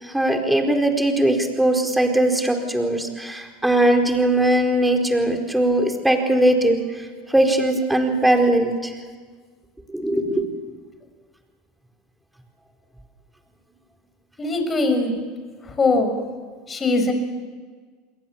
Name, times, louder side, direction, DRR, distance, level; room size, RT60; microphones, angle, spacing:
voice 1, 0.0-8.9 9.9-10.5, right 1 dB, 5° right, 3 dB, 4.4 m, -20 dB
voice 2, 14.4-15.1 15.6-16.1 16.7-17.1, left 3 dB, 25° left, 6 dB, 6.1 m, -21 dB
28.0 x 22.0 x 7.3 m, 1.5 s
hypercardioid pair, 100°, 0 cm